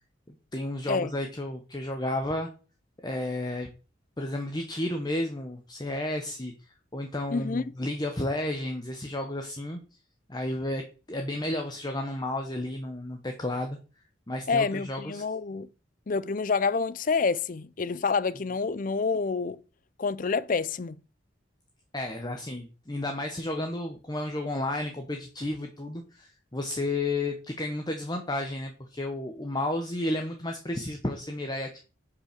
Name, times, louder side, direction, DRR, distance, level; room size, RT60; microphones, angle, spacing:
voice 1, 0.3-2.5 3.0-3.7 4.2-6.5 6.9-9.8 10.3-13.8 14.3-15.2 21.9-31.8, left 1 dB, 20° left, 1.0 m, -32 dB
voice 2, 7.3-7.7 14.5-15.7 16.1-19.6 20.0-21.0, left 4 dB, 45° left, 0.5 m, -28 dB
8.3 x 5.3 x 6.7 m
head